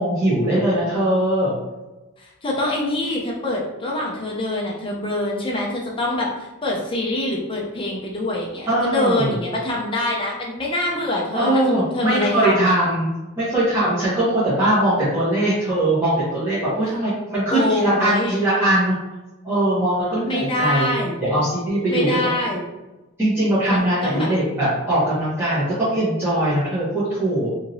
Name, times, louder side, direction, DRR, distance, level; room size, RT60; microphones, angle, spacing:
voice 1, 0.0-1.5 8.6-9.3 11.3-13.1 13.4-18.9 19.4-22.2 23.2-27.5, right 1 dB, 10° right, -13 dB, 0.8 m, -21 dB
voice 2, 2.2-12.7 17.5-18.4 20.3-21.2 21.9-22.6 23.7-24.3, left 1 dB, 25° left, -3 dB, 0.5 m, -25 dB
2.9 x 2.7 x 2.6 m, 1.1 s
head